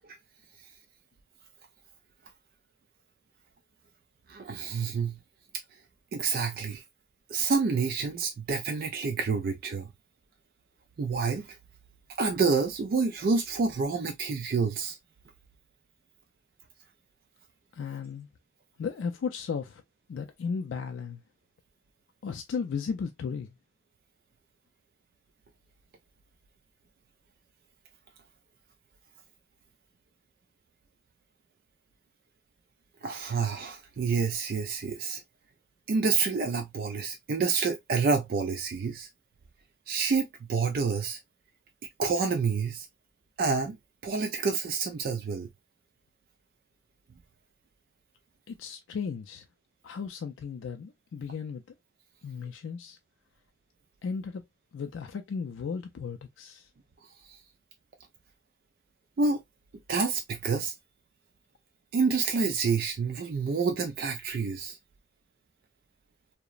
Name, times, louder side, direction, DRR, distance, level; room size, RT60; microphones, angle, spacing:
voice 1, 4.3-5.2 6.1-6.8 7.3-9.9 11.0-11.6 12.2-15.0 33.0-35.2 35.9-39.1 39.9-41.2 42.0-42.9 43.4-43.8 44.0-45.5 57.3-57.4 59.2-59.4 59.9-60.7 61.9-64.8, right 4 dB, 50° right, 0.3 m, -28 dB
voice 2, 17.7-18.3 18.8-19.8 20.1-21.2 22.2-23.5 48.5-49.4 49.8-51.6 52.2-53.0 54.0-54.4 54.7-56.7, left 6 dB, 70° left, 0.3 m, -35 dB
2.9 x 2.0 x 2.3 m
head